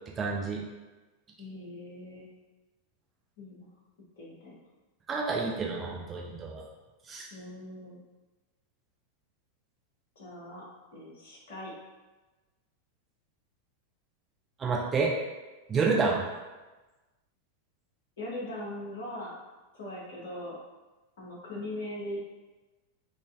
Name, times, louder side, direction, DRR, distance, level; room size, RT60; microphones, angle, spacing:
voice 1, 0.2-0.6 5.1-6.6 7.1-7.3 14.6-15.1 15.7-16.2, right 4 dB, 20° right, -2 dB, 0.5 m, -29 dB
voice 2, 1.4-2.3 3.4-3.7 4.2-4.5 7.3-8.0 10.2-10.6 10.9-11.7 18.2-19.3 19.7-20.6 21.2-22.2, left 1 dB, 55° left, -4 dB, 0.9 m, -40 dB
3.7 x 2.4 x 2.5 m, 1.2 s
figure-of-eight pair, 90°, 0 cm